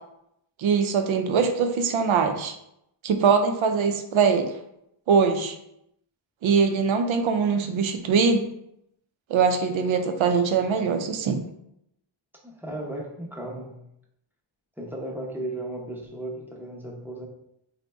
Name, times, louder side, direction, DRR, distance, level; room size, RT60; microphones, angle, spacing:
voice 1, 0.6-2.5 3.0-4.5 5.1-5.5 6.4-8.5 9.3-11.4, right 5 dB, 85° right, 6 dB, 0.5 m, -22 dB
voice 2, 12.4-13.8 14.8-17.3, right 1 dB, 5° right, -2 dB, 0.7 m, -35 dB
3.9 x 2.1 x 3.4 m, 0.79 s
wide cardioid pair, 95°, 46 cm